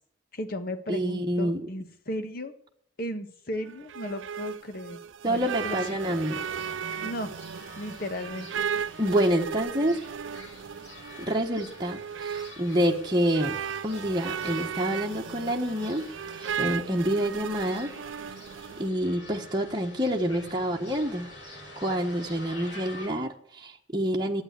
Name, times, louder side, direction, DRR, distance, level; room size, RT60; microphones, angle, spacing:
voice 1, 0.3-2.5 3.0-5.0 5.2-6.0 7.0-7.3 7.8-8.7, left 1 dB, 50° left, 7 dB, 1.6 m, -35 dB
voice 2, 0.9-1.6 5.2-6.4 9.0-10.0 11.2-13.6 13.8-16.1 16.3-17.9 18.8-21.3 21.8-24.4, equal, 20° right, 0 dB, 1.3 m, -27 dB
sound 1, 3.6-18.9, right 7 dB, 80° right, 0.5 m, -36 dB
sound 2, 5.3-23.1, left 1 dB, 70° left, 7.4 m, -47 dB
12.0 x 9.0 x 8.2 m, 0.65 s
head